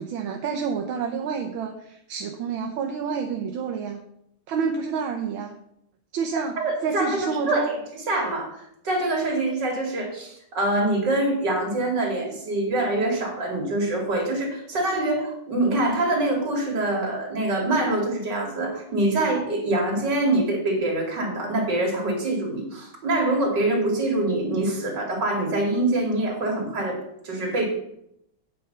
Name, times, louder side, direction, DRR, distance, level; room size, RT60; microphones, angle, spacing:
voice 1, 0.0-4.0 4.5-5.5 6.1-7.7, right 6 dB, 75° right, 3 dB, 1.7 m, -29 dB
voice 2, 6.6-27.0 27.2-27.7, right 2 dB, 55° right, 0 dB, 3.4 m, -25 dB
8.8 x 8.3 x 5.5 m, 0.75 s
omnidirectional pair, 2.3 m